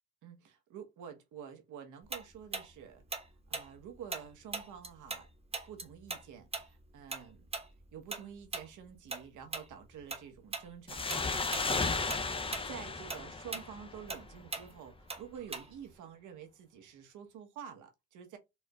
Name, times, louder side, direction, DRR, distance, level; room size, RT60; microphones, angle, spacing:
voice 1, 0.2-3.0 3.5-5.3 5.6-7.5 7.9-12.0 12.6-18.4, right 8 dB, 80° right, 0.9 m, -49 dB
Tick-tock, 2.1-5.3 5.5-10.2 10.5-10.7 11.1-11.7 12.0-15.9, right 3 dB, 20° right, 0.9 m, -40 dB
sound 1, 10.9-14.3, left 3 dB, 20° left, 0.5 m, -34 dB
4.4 x 2.1 x 2.2 m
cardioid pair, 90°, 30 cm